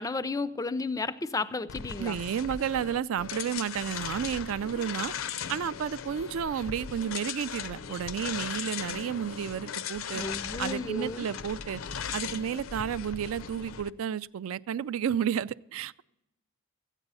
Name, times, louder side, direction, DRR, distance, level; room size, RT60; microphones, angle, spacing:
voice 1, 0.0-2.2 10.1-11.3, left 3 dB, 15° left, 0.3 m, -33 dB
sound 1, 1.7-13.9, left 7 dB, 75° left, 0.5 m, -38 dB
voice 2, 2.0-5.1 5.5-10.2 10.6-11.8 12.1-16.0, right 8 dB, 75° right, 0.3 m, -32 dB
13.5 x 9.1 x 5.4 m
head